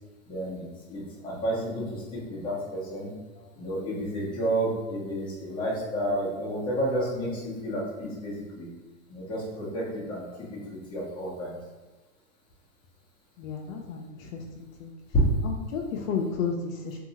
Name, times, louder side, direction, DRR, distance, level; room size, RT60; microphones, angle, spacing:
voice 1, 0.3-3.1 3.6-8.7 9.1-10.2 10.7-11.5, right 1 dB, 10° left, -8 dB, 0.8 m, -31 dB
voice 2, 13.4-14.9 15.4-17.0, left 5 dB, 65° left, 2 dB, 0.5 m, -33 dB
2.7 x 2.3 x 2.8 m, 1.2 s
hypercardioid pair, 130°, 43 cm